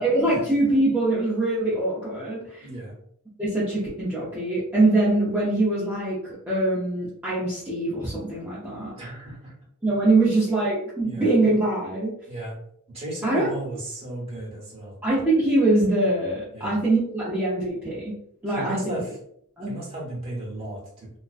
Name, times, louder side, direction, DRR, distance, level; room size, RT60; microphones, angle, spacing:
voice 1, 0.0-2.7 3.4-8.9 9.8-12.1 13.2-13.5 15.0-18.1 18.4-19.0 19.6-19.7, right 2 dB, 10° right, -9 dB, 0.5 m, -23 dB
voice 2, 2.6-2.9 8.9-9.5 10.2-10.3 11.0-11.3 12.3-12.5 12.9-15.0 16.5-16.8 18.5-19.1 19.7-20.8, right 1 dB, 25° right, -5 dB, 1.0 m, -35 dB
2.4 x 2.1 x 2.4 m, 0.70 s
head